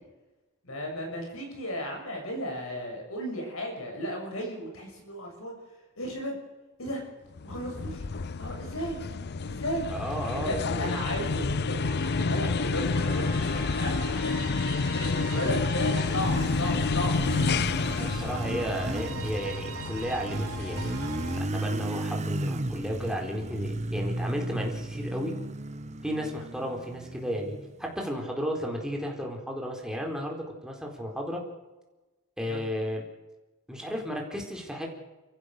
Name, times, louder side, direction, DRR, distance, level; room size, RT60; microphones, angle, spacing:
voice 1, 0.6-5.5 6.0-6.4 6.8-7.0 7.4-8.1 8.4-9.0 9.5-9.9 10.3-14.4 14.9-17.4 18.4-18.8 32.5-32.6, equal, 70° left, 2 dB, 6.6 m, -35 dB
sound 1, 7.4-21.9, left 4 dB, 50° left, 0.6 m, -30 dB
voice 2, 9.9-10.9 18.0-21.0 21.3-25.4 26.0-31.4 32.4-33.0 33.7-34.9, equal, 5° right, 0 dB, 4.1 m, -33 dB
sound 2, 11.8-21.4, right 4 dB, 85° right, 3.6 m, -42 dB
Motorcycle, 15.3-28.0, right 1 dB, 30° right, 1.0 m, -35 dB
29.5 x 15.0 x 6.7 m, 1.1 s
head